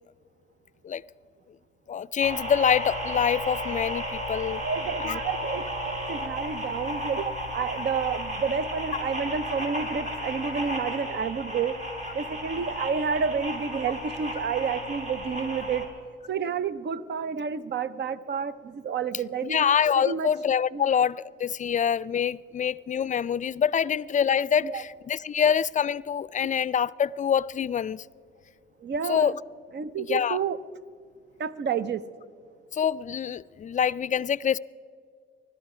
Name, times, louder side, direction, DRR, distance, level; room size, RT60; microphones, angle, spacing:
voice 1, 1.9-4.6 5.0-5.2 19.4-28.0 29.1-29.3 30.0-30.4 32.7-34.6, left 8 dB, 40° left, 0.4 m, -25 dB
sound 1, 2.2-15.9, equal, 35° right, 4.1 m, -34 dB
voice 2, 4.6-11.8 12.1-15.9 16.3-19.7 20.0-20.3 20.7-20.9 24.6-24.8 28.8-29.3 29.7-30.6 31.4-32.0, right 6 dB, 55° right, 0.7 m, -30 dB
20.5 x 12.5 x 4.9 m
cardioid pair, 70°, 21 cm